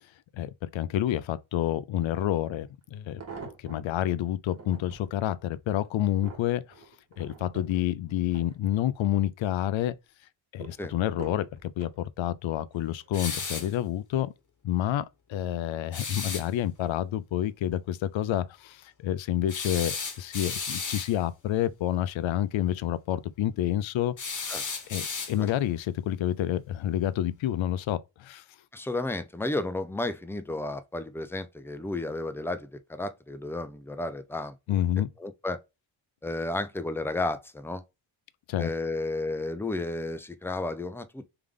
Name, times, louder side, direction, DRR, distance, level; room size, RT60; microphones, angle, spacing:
voice 1, 0.3-3.2 3.6-6.7 7.2-10.0 10.5-14.3 14.6-24.2 24.9-28.4 34.7-35.1 38.5-38.7, left 12 dB, 75° left, 0.5 m, -29 dB
sound 1, 2.9-4.0 4.5-5.1 5.7-9.1 9.5-10.0 10.6-12.0 12.7-13.1 13.4-13.5, right 5 dB, 35° right, 1.3 m, -46 dB
sound 2, 13.1-13.7 15.9-16.5 19.5-21.1 24.2-25.6, left 5 dB, 40° left, 1.1 m, -34 dB
voice 2, 28.7-34.6 35.2-35.6 36.2-37.8 38.6-41.2, left 2 dB, 5° left, 0.3 m, -32 dB
3.4 x 3.3 x 3.6 m
wide cardioid pair, 125°, 47 cm